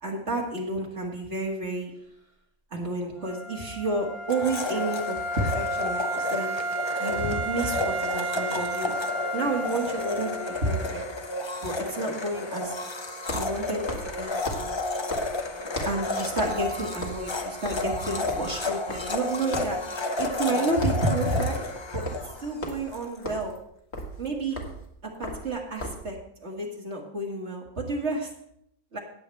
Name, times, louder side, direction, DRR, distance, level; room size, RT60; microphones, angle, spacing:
voice 1, 0.0-1.9 2.7-6.5 7.0-8.9 9.3-10.3 10.6-11.0 11.6-12.7 13.3-13.9 14.2-14.4 15.8-19.8 20.2-21.6 21.9-22.0 22.4-23.5 24.2-24.6 25.2-26.2 26.4-28.3 28.9-29.0, right 2 dB, 50° right, -1 dB, 2.0 m, -30 dB
Wind instrument woodwind instrument, 3.2-11.0, right 1 dB, 30° right, 1.7 m, -32 dB
Domestic sounds home sounds, 4.3-23.1, left 2 dB, 30° left, 0.6 m, -32 dB
sound 1, 13.2-16.1 16.4-16.7 16.9-19.3 19.5-19.8 20.2-20.5 20.7-26.1, left 1 dB, 45° left, 1.9 m, -37 dB
18.0 x 7.6 x 3.3 m, 0.72 s
omnidirectional pair, 1.6 m